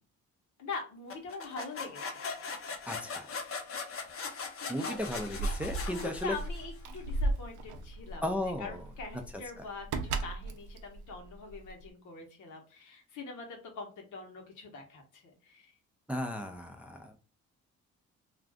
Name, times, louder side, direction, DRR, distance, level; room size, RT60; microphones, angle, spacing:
voice 1, 0.6-2.6 3.4-3.5 4.6-5.0 5.8-8.2 8.6-15.7, left 4 dB, 75° left, 2 dB, 1.1 m, -43 dB
sound 1, 1.1-6.8, left 4 dB, 50° left, 0.7 m, -40 dB
voice 2, 2.9-3.3 4.7-6.3 8.2-8.8 9.6-9.7 16.1-17.2, left 1 dB, 5° right, 4 dB, 0.4 m, -35 dB
Keys jangling, 5.0-11.9, right 2 dB, 80° right, 0.5 m, -36 dB
2.5 x 2.3 x 3.4 m, 0.37 s
cardioid pair, 90°, 30 cm